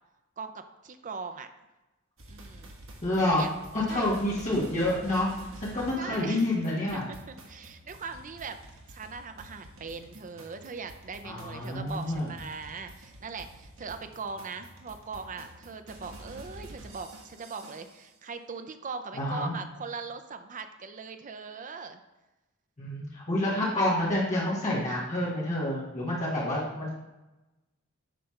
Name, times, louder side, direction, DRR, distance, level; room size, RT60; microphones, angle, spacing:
voice 1, 0.4-1.5 2.3-2.7 3.2-3.5 3.9-4.1 6.0-6.4 6.9-8.6 8.9-22.0 23.4-23.5, right 4 dB, 40° right, 8 dB, 0.6 m, -40 dB
sound 1, 2.2-18.1, right 1 dB, 70° right, 1.6 m, -49 dB
voice 2, 3.0-3.5 3.7-5.3 5.6-7.0 11.2-12.3 19.1-19.5 22.8-26.9, left 1 dB, 35° left, -8 dB, 1.7 m, -28 dB
9.1 x 3.3 x 5.8 m, 1.0 s
head